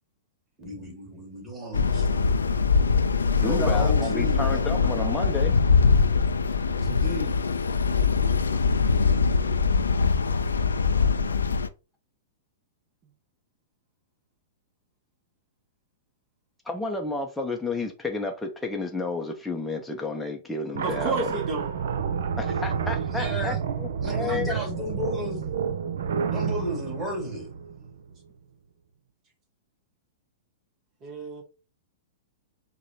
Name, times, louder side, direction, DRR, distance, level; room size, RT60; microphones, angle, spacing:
voice 1, 0.6-2.4 3.4-4.7 6.7-7.4 23.1-23.6 24.0-25.4 26.3-27.5 27.8-27.9, left 1 dB, 15° right, 1.9 m, -34 dB
sound 1, 1.7-11.7, left 5 dB, 85° left, 0.3 m, -22 dB
voice 2, 3.4-5.6 16.7-21.3 22.4-24.5, left 3 dB, 5° left, 0.6 m, -31 dB
sound 2, 20.7-28.2, right 7 dB, 65° right, 0.5 m, -29 dB
voice 3, 20.8-21.7 31.0-31.4, right 4 dB, 30° right, 0.9 m, -30 dB
4.7 x 2.2 x 2.8 m
hypercardioid pair, 110°, 0 cm